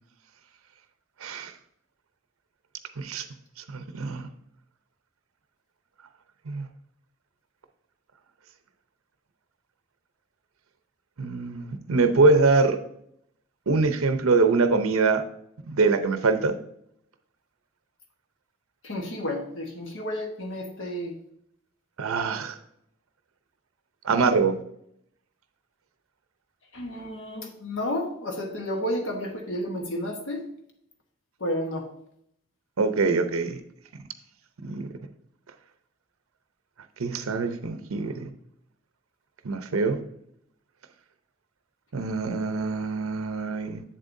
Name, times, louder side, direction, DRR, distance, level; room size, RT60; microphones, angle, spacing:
voice 1, 1.2-1.5 3.0-3.2 3.7-4.3 6.5-6.7 11.2-12.8 13.7-15.2 15.7-16.6 22.0-22.6 24.0-24.6 32.8-33.6 34.6-34.9 37.0-38.3 39.4-40.0 41.9-43.8, right 3 dB, 90° right, 8 dB, 0.7 m, -24 dB
voice 2, 18.8-21.1 26.7-30.4 31.4-31.9, left 1 dB, 60° left, 2 dB, 1.2 m, -31 dB
7.9 x 7.5 x 2.6 m, 0.73 s
head